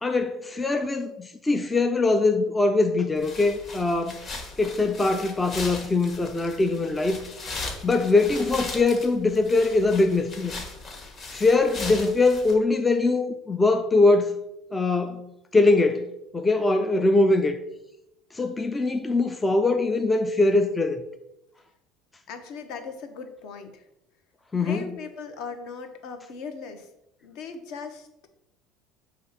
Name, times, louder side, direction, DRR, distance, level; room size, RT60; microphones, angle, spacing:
voice 1, 0.0-4.2 4.6-7.2 7.8-10.5 11.3-14.3 14.7-17.6 18.3-21.0 24.5-24.9, left 3 dB, 10° left, 0.4 m, -22 dB
sound 1, 3.2-12.5, left 3 dB, 30° left, 1.3 m, -38 dB
voice 2, 22.3-23.9 24.5-26.9 27.2-28.1, left 5 dB, 60° left, 1.0 m, -38 dB
7.3 x 3.2 x 5.8 m
cardioid pair, 160°, 0 cm